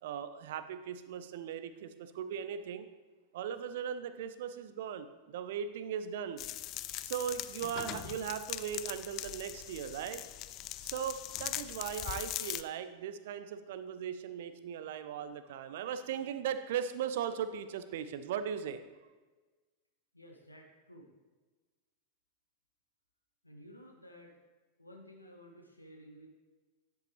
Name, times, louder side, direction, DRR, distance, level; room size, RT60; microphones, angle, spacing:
voice 1, 0.0-2.9 3.3-6.4 7.0-10.2 10.8-18.8, right 8 dB, 55° right, 11 dB, 0.6 m, -38 dB
sound 1, 6.4-12.6, left 14 dB, 35° left, 0.3 m, -41 dB
voice 2, 20.1-21.1 23.4-24.4 24.8-26.3, equal, 85° left, 1 dB, 1.0 m, -54 dB
10.0 x 7.9 x 3.3 m, 1.3 s
figure-of-eight pair, 90°, 0 cm